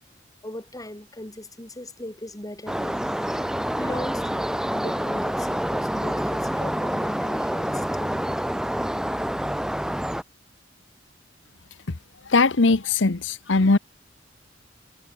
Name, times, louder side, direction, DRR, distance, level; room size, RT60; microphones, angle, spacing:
voice 1, 0.4-3.0 3.8-4.5 4.7-8.3, left 1 dB, 20° left, 4.2 m, -38 dB
sound 1, 2.7-10.2, equal, 5° right, 0.8 m, -27 dB
voice 2, 12.3-13.8, left 3 dB, 80° left, 1.0 m, -20 dB
head